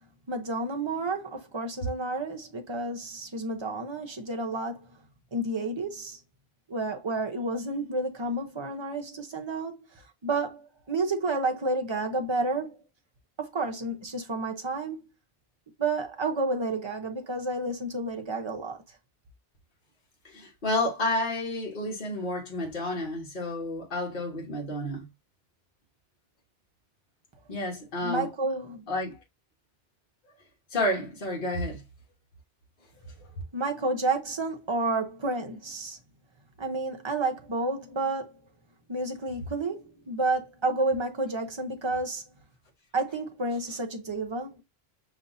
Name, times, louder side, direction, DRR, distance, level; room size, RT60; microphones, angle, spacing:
voice 1, 0.3-4.9 5.3-6.2 6.7-12.8 13.4-15.0 15.8-18.8 28.0-28.9 33.5-36.0 36.6-38.4 38.9-42.2 42.9-44.6, right 2 dB, 30° right, 0.7 m, -30 dB
voice 2, 20.2-25.1 27.5-28.3 28.9-29.2 30.7-31.8, left 1 dB, 55° left, 1.4 m, -30 dB
5.4 x 2.7 x 2.5 m
omnidirectional pair, 1.1 m